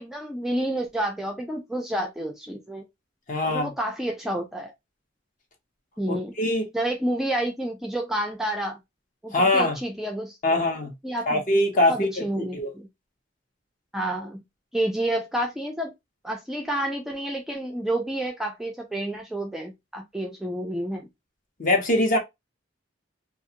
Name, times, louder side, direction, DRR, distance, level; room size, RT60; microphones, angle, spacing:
voice 1, 0.0-2.8 3.4-4.7 6.0-6.3 6.7-8.8 9.2-10.6 11.0-11.4 11.9-12.9 13.9-14.4 14.7-15.9 16.2-21.1, right 1 dB, ahead, 0.3 m, -29 dB
voice 2, 3.3-3.7 6.1-6.7 9.3-9.8 10.4-10.9 11.3-12.1 12.4-12.7 21.6-22.2, left 1 dB, 45° left, 0.8 m, -22 dB
2.4 x 2.3 x 2.8 m
head